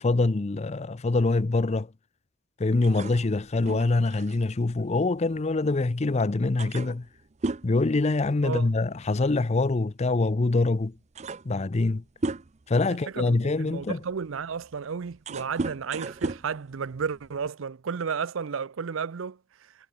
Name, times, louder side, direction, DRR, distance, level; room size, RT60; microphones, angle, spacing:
voice 1, 0.0-1.9 2.6-7.1 7.6-10.9 11.5-12.0 12.7-14.0, left 3 dB, 30° left, 0.5 m, -24 dB
sound 1, 2.8-5.8 6.2-6.3 6.6-8.8 9.0-9.3 10.3-10.4 10.8-12.8 13.4-17.5, right 3 dB, 35° right, 0.6 m, -36 dB
voice 2, 12.9-19.4, right 6 dB, 75° right, 0.5 m, -33 dB
head